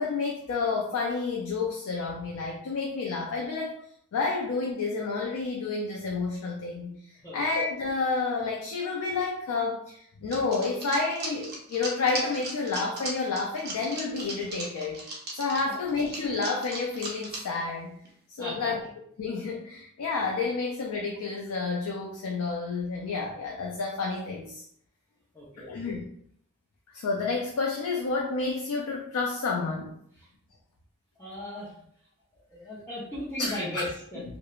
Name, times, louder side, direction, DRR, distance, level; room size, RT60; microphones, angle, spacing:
voice 1, 0.0-3.8 4.1-15.0 15.3-18.0 18.3-18.8 19.2-24.6 25.7-26.1 26.9-29.9 33.4-33.8, left 4 dB, 75° left, 0 dB, 0.4 m, -30 dB
sound 1, 10.3-17.6 18.0-18.1 18.4-18.5, right 2 dB, 45° right, 0.6 m, -37 dB
voice 2, 18.4-18.7 25.3-25.7 31.2-31.7 32.5-34.2, left 1 dB, 10° left, -11 dB, 0.6 m, -36 dB
3.0 x 2.1 x 2.3 m, 0.67 s
head